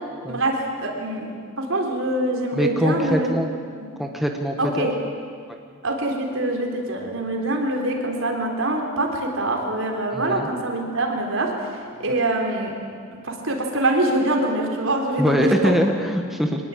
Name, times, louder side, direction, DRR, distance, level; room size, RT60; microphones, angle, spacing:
voice 1, 0.3-1.3 1.6-3.3 4.6-4.9 5.8-11.7 12.0-12.7 13.2-15.7, right 1 dB, 70° right, 2 dB, 3.9 m, -24 dB
voice 2, 2.5-3.5 4.0-4.9 10.1-10.5 15.2-16.6, equal, ahead, 2 dB, 1.3 m, -23 dB
24.0 x 19.5 x 8.7 m, 2.1 s
head